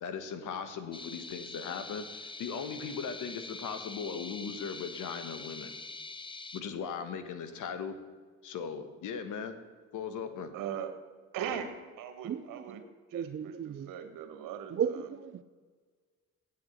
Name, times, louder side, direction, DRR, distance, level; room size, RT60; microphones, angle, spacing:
voice 1, 0.0-5.7 6.5-8.0 8.4-9.5 9.9-10.5, left 6 dB, 70° left, 1.3 m, -38 dB
sound 1, 0.9-6.6, left 3 dB, 15° left, 0.6 m, -44 dB
voice 2, 10.5-10.9 11.3-12.8 13.1-15.0, right 8 dB, 80° right, 1.4 m, -39 dB
voice 3, 12.2-12.8 13.1-13.9 14.7-15.4, right 8 dB, 40° right, 0.5 m, -35 dB
8.6 x 7.0 x 7.9 m
cardioid pair, 85°, 32 cm